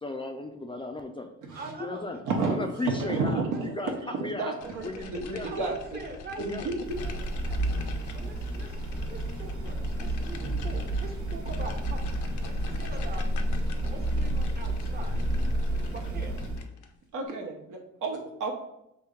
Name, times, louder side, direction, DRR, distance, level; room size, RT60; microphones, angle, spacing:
voice 1, 0.0-1.3 1.8-2.2 2.5-3.9 4.2-4.5 4.8-5.7 6.4-6.7, left 3 dB, 20° left, 4 dB, 0.4 m, -35 dB
voice 2, 1.5-2.4 2.9-3.1 3.4-4.1 5.4-6.7 7.0-7.9 8.1-8.8 9.1-13.3 13.8-15.3 15.9-16.3, right 3 dB, 30° right, 3 dB, 0.8 m, -44 dB
voice 3, 2.3-6.0 6.4-7.0 7.7-7.8 17.1-18.5, right 3 dB, 80° right, 2 dB, 1.0 m, -31 dB
sound 1, 4.6-17.0, left 5 dB, 75° left, 0.6 m, -44 dB
sound 2, 6.8-16.6, right 1 dB, 50° right, 1.2 m, -30 dB
3.6 x 2.7 x 4.4 m, 0.83 s
cardioid pair, 90°, 30 cm